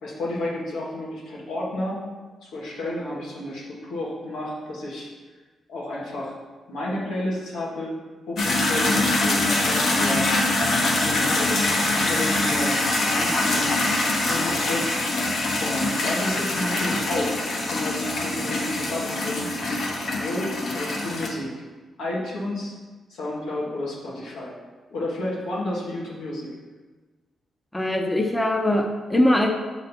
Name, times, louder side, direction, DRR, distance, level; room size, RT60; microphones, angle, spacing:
voice 1, 0.0-2.0 2.4-5.1 5.7-6.3 6.7-8.0 8.3-10.3 10.9-14.9 15.2-17.4 17.7-19.5 20.2-21.6 22.0-22.7 23.1-24.6 24.9-26.5, left 1 dB, 90° left, -5 dB, 1.7 m, -31 dB
sound 1, 8.4-21.3, left 2 dB, 65° left, 1.1 m, -24 dB
voice 2, 27.7-29.5, left 1 dB, 10° left, 2 dB, 0.7 m, -21 dB
6.6 x 4.0 x 4.4 m, 1.3 s
cardioid pair, 85°, 0 cm